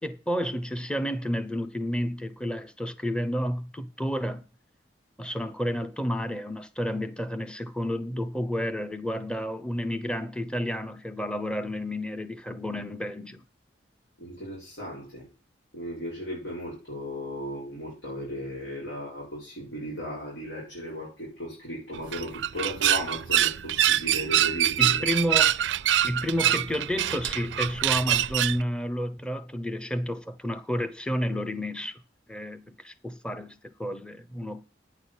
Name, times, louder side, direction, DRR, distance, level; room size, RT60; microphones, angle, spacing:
voice 1, 0.0-4.5 5.2-13.4 24.8-25.6 26.0-32.0 32.3-34.6, equal, 5° left, 0.7 m, -31 dB
voice 2, 14.2-15.3 15.7-25.0, equal, 85° left, 6.2 m, -36 dB
sound 1, 21.9-28.6, right 12 dB, 80° right, 0.4 m, -25 dB
9.2 x 5.8 x 8.1 m
head